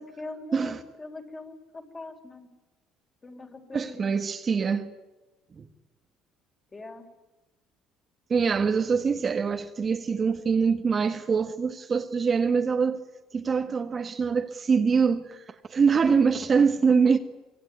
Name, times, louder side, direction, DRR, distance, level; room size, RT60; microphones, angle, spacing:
voice 1, 0.0-2.5 3.2-4.1 6.7-7.1, left 2 dB, 25° left, 4.3 m, -42 dB
voice 2, 0.5-0.8 3.7-4.9 5.6-5.7 8.3-13.0 13.3-17.2, right 5 dB, 35° right, 1.7 m, -24 dB
25.5 x 22.5 x 9.7 m
cardioid pair, 115°, 0 cm